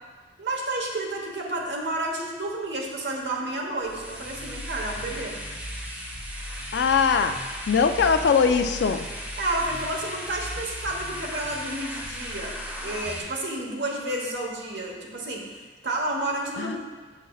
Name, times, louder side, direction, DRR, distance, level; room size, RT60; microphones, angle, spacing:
voice 1, 0.4-5.4 9.4-16.8, right 2 dB, 85° right, -1 dB, 1.1 m, -31 dB
sound 1, 3.8-13.2, equal, 10° right, 0.9 m, -36 dB
voice 2, 6.7-7.4 7.7-9.1 16.6-16.8, left 6 dB, 70° left, 8 dB, 0.4 m, -21 dB
7.0 x 6.9 x 2.3 m, 1.4 s
head